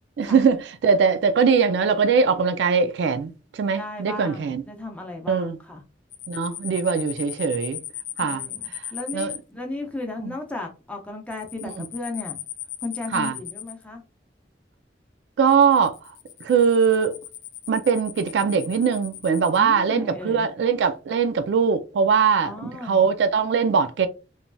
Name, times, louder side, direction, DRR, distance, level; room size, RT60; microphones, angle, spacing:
voice 1, 0.2-4.6 5.3-5.6 6.3-7.8 8.2-8.4 9.1-9.3 10.2-10.3 11.6-11.9 13.1-13.3 15.4-15.9 16.4-17.1 17.7-24.1, right 6 dB, 70° right, 0.3 m, -21 dB
voice 2, 3.7-5.8 8.2-12.4 12.8-14.0 19.6-20.5 22.4-23.0, left 2 dB, 10° left, 0.6 m, -35 dB
sound 1, 6.1-9.4 11.3-13.8 15.5-19.6, left 12 dB, 75° left, 0.4 m, -37 dB
3.1 x 2.6 x 2.2 m
head